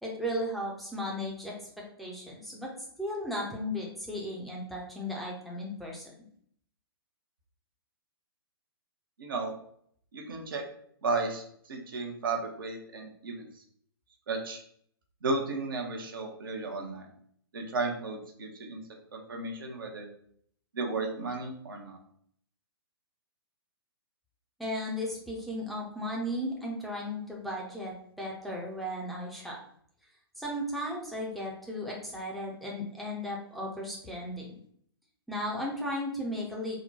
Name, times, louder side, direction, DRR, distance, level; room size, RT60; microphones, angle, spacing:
voice 1, 0.0-1.7 2.0-2.7 3.0-6.0 24.6-29.6 30.4-34.5 35.3-36.8, equal, ahead, -3 dB, 0.6 m, -35 dB
voice 2, 9.2-9.5 10.1-10.6 11.0-13.5 14.3-14.6 15.2-17.1 17.5-18.8 19.1-20.1 20.7-22.0, right 3 dB, 60° right, 2 dB, 0.8 m, -34 dB
3.9 x 2.2 x 4.0 m, 0.64 s
figure-of-eight pair, 120°, 13 cm